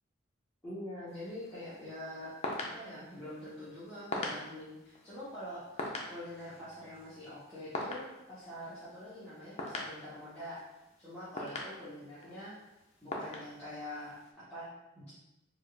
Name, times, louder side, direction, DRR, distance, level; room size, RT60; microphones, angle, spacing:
voice 1, 0.6-10.6 11.0-12.5 13.0-15.1, left 1 dB, 5° left, -14 dB, 1.0 m, -45 dB
sound 1, 1.1-14.3, left 2 dB, 35° left, 0.5 m, -44 dB
4.2 x 2.4 x 3.3 m, 0.97 s
head